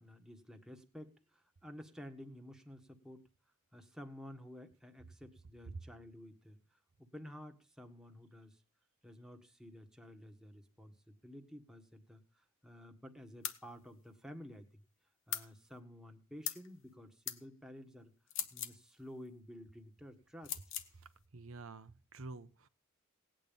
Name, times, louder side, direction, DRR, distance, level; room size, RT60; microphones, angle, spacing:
voice 1, 0.0-3.2 3.7-8.6 9.0-14.8 15.3-18.1 18.5-20.6, equal, 5° right, 5 dB, 1.6 m, -52 dB
sound 1, 13.4-13.6 15.3-15.5 16.4-16.7 17.3-17.4 18.3-18.8 20.4-20.9, left 10 dB, 55° left, 1.4 m, -39 dB
voice 2, 21.0-22.7, right 3 dB, 65° right, 10 dB, 0.9 m, -50 dB
18.5 x 9.0 x 5.3 m, 0.33 s
head